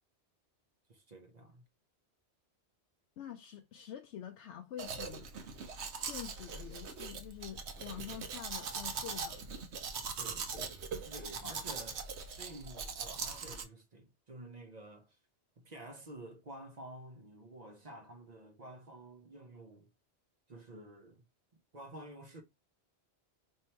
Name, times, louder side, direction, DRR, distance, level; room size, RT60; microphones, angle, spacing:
voice 1, 0.9-1.6 10.2-12.1 12.4-15.2 15.6-19.9 20.5-21.2 21.7-22.4, right 1 dB, 40° right, 0.8 m, -50 dB
voice 2, 3.2-5.3 6.1-9.5 11.4-11.5, left 9 dB, 80° left, 0.9 m, -46 dB
Domestic sounds home sounds, 4.8-13.6, right 5 dB, 75° right, 1.0 m, -41 dB
2.9 x 2.7 x 4.3 m
omnidirectional pair, 1.2 m